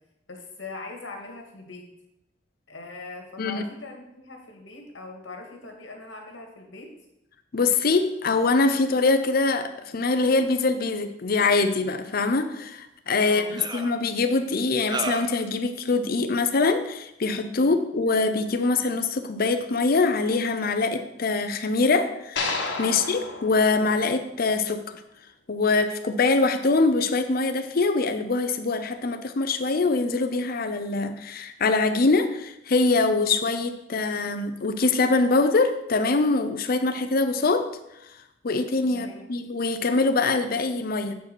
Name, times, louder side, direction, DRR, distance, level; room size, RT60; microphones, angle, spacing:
voice 1, 0.3-1.9 2.7-6.9 13.2-13.5 17.5-17.8 22.8-23.0 38.9-39.2, left 3 dB, 85° left, 2 dB, 1.9 m, -41 dB
voice 2, 7.5-25.0 25.5-37.7 38.4-41.1, left 3 dB, 50° left, 8 dB, 0.6 m, -23 dB
sound 1, 12.6-12.7 13.6-13.9 14.9-15.4, right 3 dB, 25° right, 0.5 m, -32 dB
sound 2, 22.4-24.7, left 3 dB, 70° left, 1.3 m, -32 dB
8.2 x 4.8 x 6.1 m, 0.85 s
head